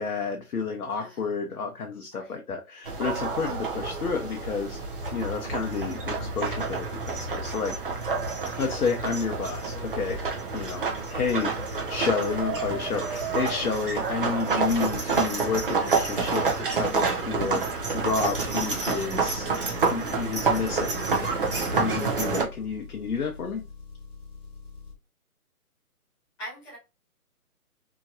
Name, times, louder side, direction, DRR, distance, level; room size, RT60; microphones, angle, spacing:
voice 1, 0.0-4.8 5.1-7.7 8.6-10.8 11.1-11.5 11.9-19.5 19.8-23.6, left 5 dB, 75° left, 2 dB, 0.8 m, -30 dB
sound 1, 2.9-22.4, right 4 dB, 35° right, 0.6 m, -28 dB
Engine, 18.1-25.0, left 4 dB, 40° left, 0.9 m, -45 dB
voice 2, 26.4-26.8, equal, 15° left, -6 dB, 1.5 m, -42 dB
2.9 x 2.7 x 2.4 m, 0.27 s
hypercardioid pair, 155°, 45 cm